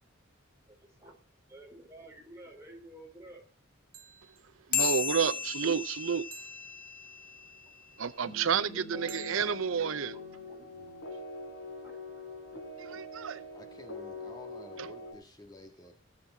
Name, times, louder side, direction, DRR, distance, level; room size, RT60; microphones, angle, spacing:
voice 1, 0.7-1.2 1.5-3.4 7.7-7.8 8.7-9.2 9.4-9.5 10.1-10.7 11.7-12.1 12.5-13.1, right 1 dB, 15° right, 4.3 m, -52 dB
sound 1, 2.4-2.8 3.9-4.7 6.3-7.4 9.1-10.1, right 9 dB, 45° right, 2.4 m, -53 dB
sound 2, 4.7-7.6, left 8 dB, 40° left, 1.3 m, -34 dB
voice 2, 4.7-6.3 8.0-10.1 12.8-13.4 14.8-14.9, right 7 dB, 75° right, 0.6 m, -30 dB
sound 3, 8.2-15.1, left 2 dB, 60° left, 3.7 m, -43 dB
voice 3, 13.5-15.9, left 1 dB, 20° left, 1.8 m, -52 dB
17.5 x 7.6 x 4.4 m
head